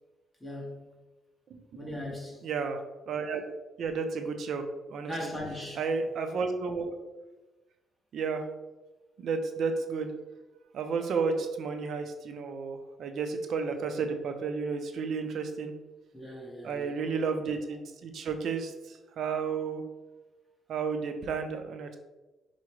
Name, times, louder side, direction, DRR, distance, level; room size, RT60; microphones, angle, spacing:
voice 1, 0.4-0.9 1.8-2.5 5.1-5.8 16.1-16.9, left 1 dB, 10° left, -1 dB, 1.0 m, -39 dB
voice 2, 2.4-3.5 3.8-5.3 5.8-6.9 8.1-8.5 9.2-10.1 10.7-15.7 16.6-19.8 20.7-22.0, right 5 dB, 65° right, 6 dB, 0.4 m, -32 dB
4.7 x 2.1 x 3.0 m, 1.1 s
cardioid pair, 90°, 0 cm